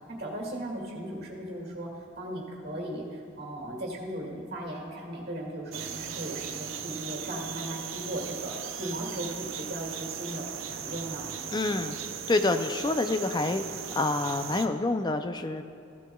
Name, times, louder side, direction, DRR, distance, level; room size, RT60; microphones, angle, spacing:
voice 1, 0.0-1.9 2.2-11.3, right 1 dB, 50° right, -1 dB, 2.1 m, -37 dB
sound 1, 5.7-14.7, right 8 dB, 75° right, 0.6 m, -38 dB
voice 2, 11.5-12.0 12.3-13.6 13.9-15.6, left 2 dB, 20° left, 8 dB, 0.4 m, -27 dB
14.5 x 11.5 x 2.3 m, 2.4 s
head